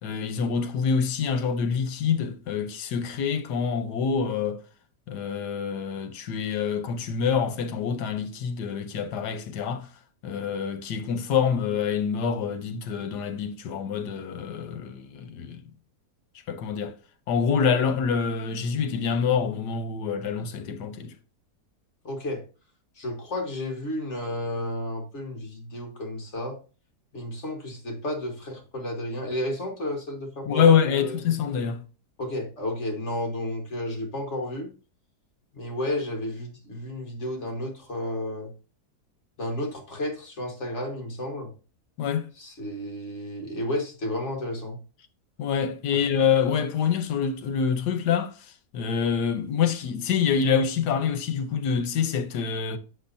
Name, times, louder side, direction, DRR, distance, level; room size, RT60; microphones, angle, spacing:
voice 1, 0.0-4.6 5.1-9.9 10.2-15.6 16.5-16.9 17.3-21.1 30.4-31.8 42.0-42.3 45.4-52.8, left 7 dB, 85° left, 1.4 m, -26 dB
voice 2, 22.0-22.4 23.0-26.6 27.1-31.2 32.2-34.7 35.5-38.5 39.4-41.5 42.4-44.8 45.9-46.0, left 1 dB, 45° left, 1.7 m, -32 dB
7.7 x 6.4 x 2.6 m
omnidirectional pair, 1.7 m